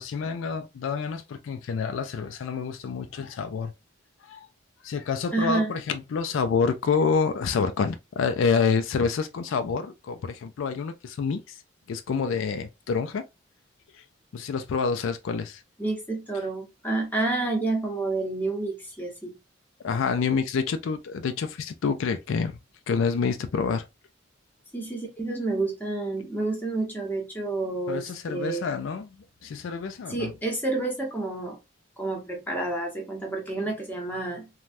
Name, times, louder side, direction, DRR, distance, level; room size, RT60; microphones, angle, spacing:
voice 1, 0.0-3.7 4.3-4.5 4.8-11.5 11.9-13.2 14.3-15.6 19.8-22.6 22.9-23.9 27.9-29.1 29.4-30.3, left 5 dB, 75° left, 0.4 m, -27 dB
voice 2, 5.3-5.7 15.8-19.3 24.7-28.7 30.1-31.6 32.0-34.5, right 2 dB, 10° left, 0.9 m, -29 dB
3.2 x 2.2 x 2.5 m
head